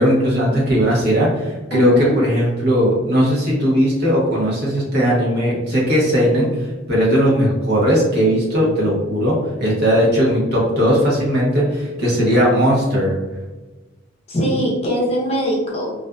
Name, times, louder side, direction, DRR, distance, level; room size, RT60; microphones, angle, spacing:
voice 1, 0.0-6.5 6.9-13.1, equal, 55° right, -5 dB, 0.8 m, -17 dB
voice 2, 1.7-2.2 14.3-15.9, equal, 30° left, -4 dB, 0.6 m, -21 dB
2.4 x 2.4 x 2.2 m, 1.2 s
head